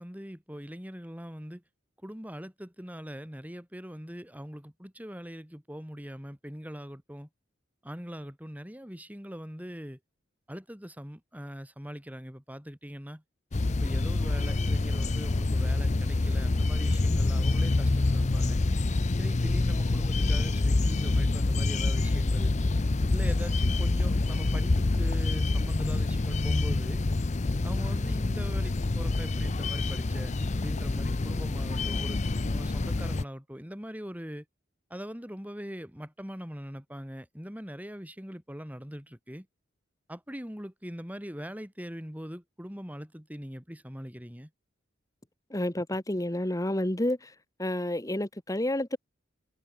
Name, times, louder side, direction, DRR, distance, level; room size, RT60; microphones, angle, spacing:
voice 1, 0.0-1.6 2.0-7.3 7.8-10.0 10.5-13.2 13.7-18.6 19.2-22.5 23.1-27.0 27.6-32.2 32.5-34.4 34.9-39.5 40.1-44.5, equal, 10° right, 4.5 m, -41 dB
sound 1, 13.5-33.2, left 2 dB, 35° left, 0.6 m, -27 dB
voice 2, 45.5-47.3 47.6-49.0, left 1 dB, 20° left, 1.5 m, -29 dB
head